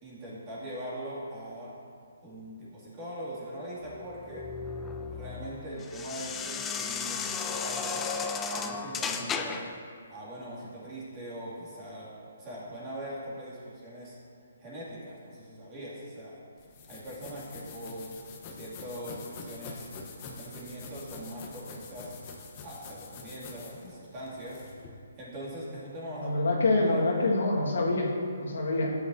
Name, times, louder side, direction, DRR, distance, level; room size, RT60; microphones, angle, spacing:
voice 1, 0.0-1.8 2.2-4.5 5.1-8.1 8.5-9.7 10.1-14.2 14.6-16.4 16.9-18.2 18.5-19.9 20.3-22.1 22.6-24.6 25.2-27.2, equal, 25° right, -7 dB, 2.5 m, -41 dB
sound 1, 3.9-9.8, left 5 dB, 10° left, 0.3 m, -34 dB
sound 2, 16.6-24.9, left 4 dB, 30° left, 0.9 m, -45 dB
voice 2, 26.2-28.1 28.4-28.9, left 2 dB, 80° left, -2 dB, 1.7 m, -26 dB
11.5 x 9.0 x 2.7 m, 2.3 s
hypercardioid pair, 160°, 0 cm